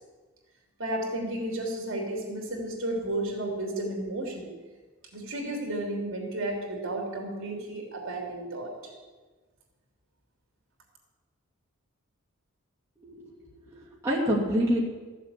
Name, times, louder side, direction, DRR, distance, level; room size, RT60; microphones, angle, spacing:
voice 1, 0.8-4.5 5.1-8.7, right 1 dB, 65° right, 0 dB, 3.1 m, -32 dB
voice 2, 13.0-13.4 13.7-14.8, equal, 15° right, -6 dB, 2.6 m, -27 dB
14.0 x 7.4 x 8.4 m, 1.3 s
head